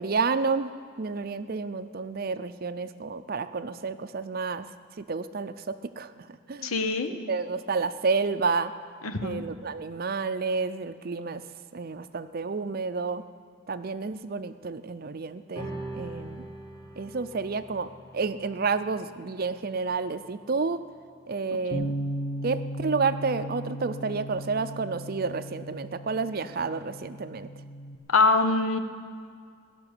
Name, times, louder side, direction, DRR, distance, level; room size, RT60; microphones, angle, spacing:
voice 1, 0.0-4.7 5.0-6.7 7.3-8.7 9.2-11.4 11.7-13.2 13.7-16.5 17.0-20.8 21.3-22.0 22.4-27.5, right 4 dB, 45° right, 12 dB, 0.5 m, -30 dB
voice 2, 6.6-7.1 9.0-9.4 21.7-21.9 28.1-28.8, left 3 dB, 90° left, 8 dB, 1.0 m, -24 dB
sound 1, 15.5-22.3, right 1 dB, 20° left, 1.3 m, -44 dB
Bass guitar, 21.7-28.0, right 1 dB, 50° left, 1.3 m, -36 dB
17.0 x 6.9 x 9.8 m, 2.1 s
head